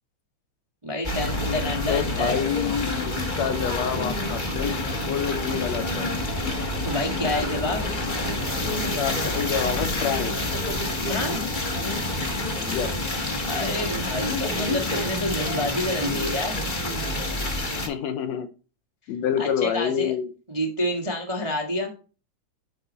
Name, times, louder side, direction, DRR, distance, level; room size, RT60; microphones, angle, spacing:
voice 1, 0.8-2.3 6.8-7.9 11.1-11.5 13.4-16.6 19.4-20.1 20.5-21.9, left 1 dB, 20° right, 0 dB, 0.8 m, -28 dB
sound 1, 1.0-17.9, left 2 dB, 45° left, 0.6 m, -28 dB
voice 2, 1.9-4.8 5.1-6.1 8.7-10.4 12.6-12.9 17.8-18.5 19.1-20.3, left 8 dB, 75° left, 9 dB, 1.9 m, -27 dB
10.0 x 4.0 x 4.2 m, 0.34 s
omnidirectional pair, 3.4 m